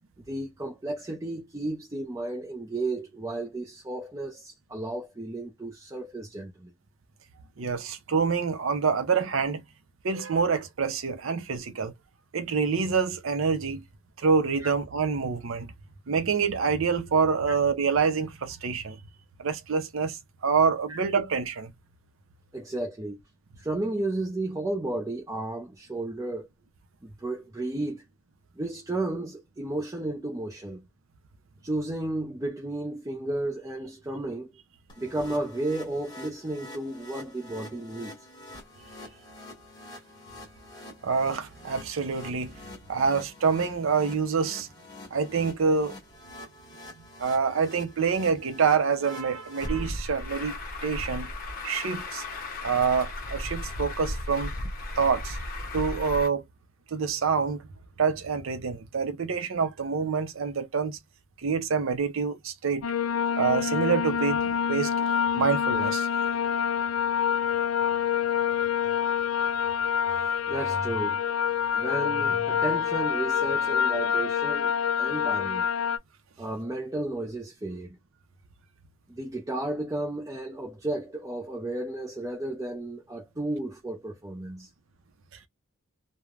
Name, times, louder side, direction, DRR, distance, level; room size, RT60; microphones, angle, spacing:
voice 1, 0.3-6.7 14.6-14.7 17.5-17.6 20.9-21.0 22.5-23.2 23.6-26.5 27.0-28.0 28.6-30.8 31.6-34.5 35.0-38.1 70.5-71.2 71.7-75.7 76.4-78.0 79.1-84.7, right 2 dB, 15° right, 0.5 m, -33 dB
voice 2, 7.6-9.6 10.0-11.9 12.3-13.8 14.2-15.7 16.1-19.0 19.4-21.7 41.0-42.6 42.9-44.7 45.1-46.0 47.2-51.3 51.6-52.2 52.6-54.5 55.0-55.4 55.7-56.4 56.9-57.6 58.0-61.0 61.4-62.9 63.4-64.9 65.3-66.1, right 5 dB, 70° right, 0.5 m, -26 dB
sound 1, 34.9-49.7, left 1 dB, 20° left, 1.5 m, -46 dB
Truck, 49.6-56.3, left 1 dB, 45° left, 0.7 m, -35 dB
sound 2, 62.8-76.0, left 8 dB, 90° left, 0.4 m, -26 dB
3.2 x 2.1 x 2.4 m
head